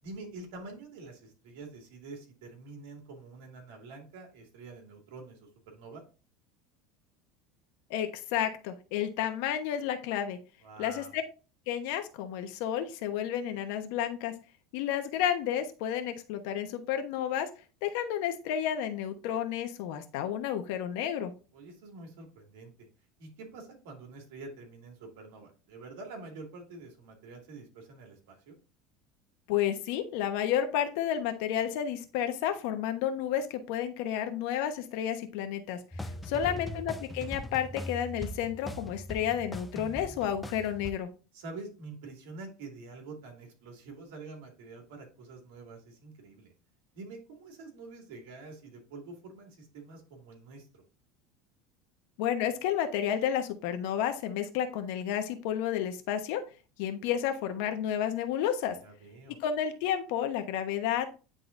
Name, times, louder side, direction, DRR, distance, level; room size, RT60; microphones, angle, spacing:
voice 1, 0.0-6.0 10.6-11.1 21.5-22.7 23.2-28.6 36.1-36.6 41.3-46.5 46.9-50.8 58.8-59.4, right 3 dB, 80° right, 2 dB, 2.3 m, -47 dB
voice 2, 7.9-10.4 10.8-11.2 11.7-14.3 14.7-17.5 17.8-21.3 29.5-35.8 36.2-41.1 52.2-56.4 56.8-58.8 59.4-61.1, left 9 dB, 70° left, 8 dB, 1.0 m, -31 dB
sound 1, 35.9-40.9, left 1 dB, 5° left, 0.5 m, -40 dB
9.9 x 3.8 x 2.6 m, 0.35 s
supercardioid pair, 140°, 0 cm